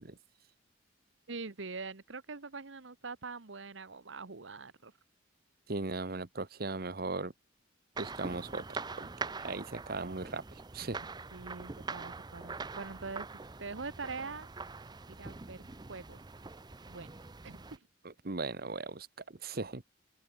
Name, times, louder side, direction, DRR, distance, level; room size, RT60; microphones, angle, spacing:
voice 1, 1.3-4.9 11.3-14.5 15.1-16.2 16.9-17.1 17.4-17.9, right 4 dB, 80° right, 1.3 m, -44 dB
voice 2, 5.7-7.3 8.0-8.6 9.0-9.1 9.4-10.4 10.7-11.1 18.0-19.8, right 3 dB, 55° right, 1.1 m, -38 dB
sound 1, 7.9-17.8, right 4 dB, 20° right, 0.6 m, -44 dB
open air
head